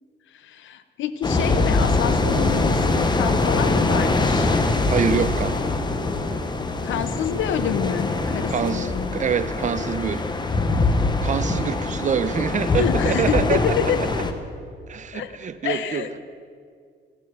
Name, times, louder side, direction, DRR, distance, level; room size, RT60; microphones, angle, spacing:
voice 1, 0.3-4.5 6.8-9.2 12.8-14.1 15.1-15.3 15.6-16.2, left 9 dB, 75° left, 11 dB, 0.7 m, -27 dB
sound 1, 1.2-14.3, left 3 dB, 20° left, 0.9 m, -23 dB
voice 2, 4.9-5.5 8.5-10.2 11.2-13.8 14.9-16.1, right 7 dB, 40° right, 12 dB, 0.6 m, -25 dB
15.0 x 6.7 x 6.1 m, 2.1 s
cardioid pair, 90°, 20 cm